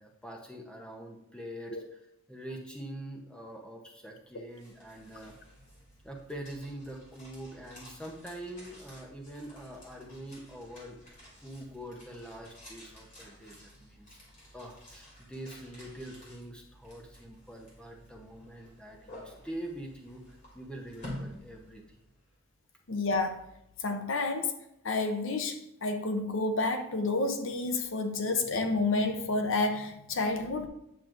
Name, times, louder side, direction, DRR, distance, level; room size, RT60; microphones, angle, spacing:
voice 1, 0.0-2.0 2.3-5.3 6.0-11.0 11.4-14.2 14.5-22.0, right 1 dB, 5° left, 0 dB, 0.8 m, -44 dB
sound 1, 4.3-22.3, left 1 dB, 35° left, 2.8 m, -51 dB
voice 2, 22.9-23.4 23.8-24.5 24.8-30.7, left 3 dB, 55° left, 6 dB, 0.6 m, -30 dB
9.0 x 6.3 x 2.5 m, 0.82 s
head